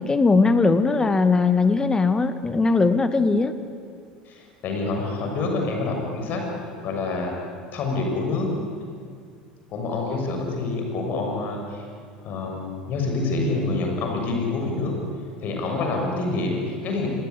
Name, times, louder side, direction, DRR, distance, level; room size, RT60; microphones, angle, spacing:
voice 1, 0.0-3.5, left 3 dB, 15° left, 11 dB, 1.8 m, -19 dB
voice 2, 4.2-6.4 6.8-7.3 7.7-8.5 9.7-11.8 12.2-15.0 15.4-17.1, left 3 dB, 40° left, 2 dB, 6.8 m, -27 dB
26.5 x 20.0 x 9.7 m, 2.2 s
figure-of-eight pair, 70°, 5 cm